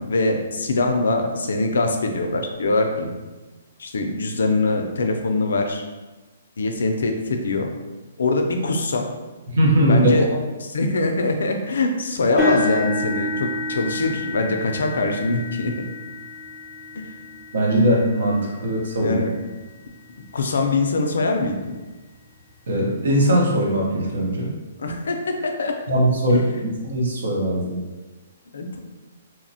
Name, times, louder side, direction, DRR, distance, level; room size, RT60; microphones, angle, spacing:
voice 1, 0.0-3.1 3.8-5.8 6.6-7.7 8.2-9.1 9.9-10.3 10.6-15.7 17.0-17.1 19.0-19.3 20.3-21.7 24.8-25.8 26.3-26.7 28.5-28.8, left 2 dB, 80° left, 4 dB, 0.4 m, -23 dB
voice 2, 9.5-10.1 17.5-19.2 22.7-24.5 25.9-27.8, right 1 dB, 70° right, -2 dB, 0.7 m, -20 dB
sound 1, 12.4-20.4 21.0-21.3 21.7-21.8 23.2-23.3, left 2 dB, 5° left, 0.4 m, -30 dB
2.8 x 2.0 x 2.7 m, 1.2 s
hypercardioid pair, 180°, 0 cm